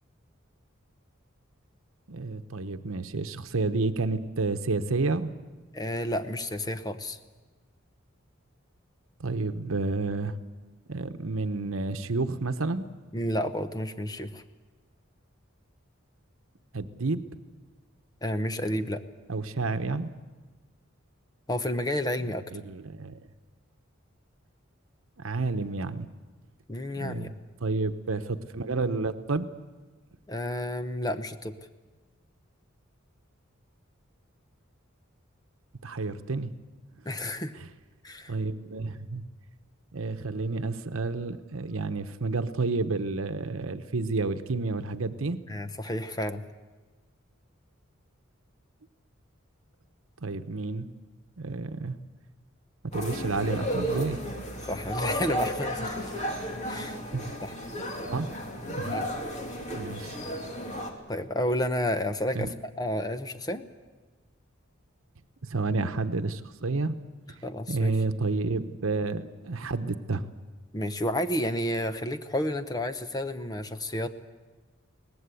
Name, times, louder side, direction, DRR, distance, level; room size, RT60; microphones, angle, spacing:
voice 1, 2.1-5.3 9.2-10.4 10.9-12.8 16.7-17.2 19.3-20.1 22.5-23.2 25.2-26.1 27.0-27.3 27.6-29.5 35.8-36.5 38.3-39.2 39.9-45.4 50.2-50.9 51.4-52.0 52.9-54.2 57.1-57.2 58.1-58.3 58.7-58.9 59.7-60.2 62.3-62.5 65.4-66.9 67.7-70.3, right 3 dB, 80° right, 9 dB, 1.0 m, -30 dB
voice 2, 5.7-7.2 13.1-14.4 18.2-19.0 21.5-22.4 26.7-27.3 30.3-31.5 37.0-37.5 38.0-38.3 45.5-46.4 54.6-56.1 56.7-57.0 57.4-57.5 58.9-59.1 61.1-63.7 67.4-67.9 70.7-74.1, left 1 dB, 20° left, 10 dB, 0.9 m, -31 dB
sound 1, 52.9-60.9, equal, 35° left, 2.7 m, -33 dB
22.5 x 19.0 x 8.4 m, 1.3 s
head